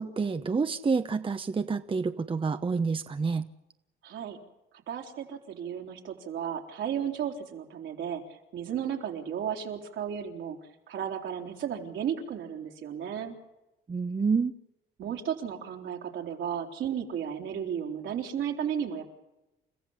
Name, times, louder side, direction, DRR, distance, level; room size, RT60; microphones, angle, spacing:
voice 1, 0.0-3.5 13.9-14.5, right 5 dB, 25° right, 9 dB, 0.9 m, -28 dB
voice 2, 4.0-4.4 4.9-10.6 10.9-13.4 15.0-19.0, right 8 dB, 75° right, 2 dB, 3.6 m, -34 dB
30.0 x 15.0 x 7.2 m, 0.99 s
cardioid pair, 90°, 20 cm